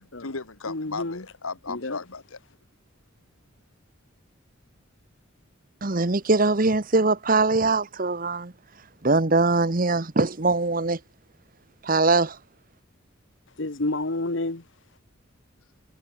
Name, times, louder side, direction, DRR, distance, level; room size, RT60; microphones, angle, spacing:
voice 1, 0.0-2.4, left 4 dB, 85° left, 1.8 m, -36 dB
voice 2, 0.7-1.2 1.7-2.0 13.6-14.6, left 2 dB, 60° left, 1.4 m, -29 dB
voice 3, 5.8-8.5 9.0-11.0 11.8-12.4, right 3 dB, 40° right, 1.1 m, -22 dB
head